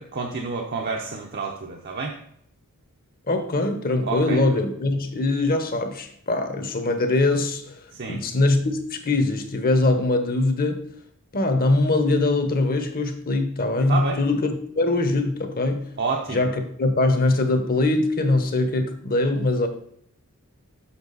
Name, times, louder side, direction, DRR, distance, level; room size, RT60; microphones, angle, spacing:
voice 1, 0.0-2.2 4.0-4.4 7.9-8.2 13.9-14.2 16.0-16.5, right 4 dB, 45° right, 0.8 m, -29 dB
voice 2, 3.3-7.8 8.1-10.8 11.3-15.9 16.3-19.7, left 2 dB, 40° left, 1.0 m, -22 dB
7.1 x 5.9 x 4.0 m
head